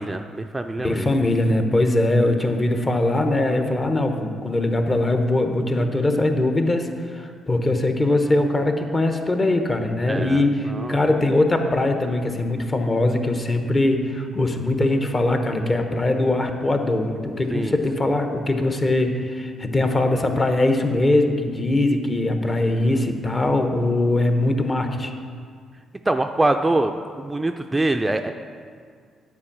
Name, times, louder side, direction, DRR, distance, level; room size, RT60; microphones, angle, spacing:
voice 1, 0.0-1.1 10.1-10.4 10.7-11.1 17.5-17.8 26.1-28.3, right 2 dB, 15° right, 6 dB, 0.4 m, -24 dB
voice 2, 0.8-25.1, left 2 dB, 30° left, 5 dB, 1.0 m, -21 dB
9.7 x 4.7 x 7.2 m, 2.1 s
cardioid pair, 90°, 0 cm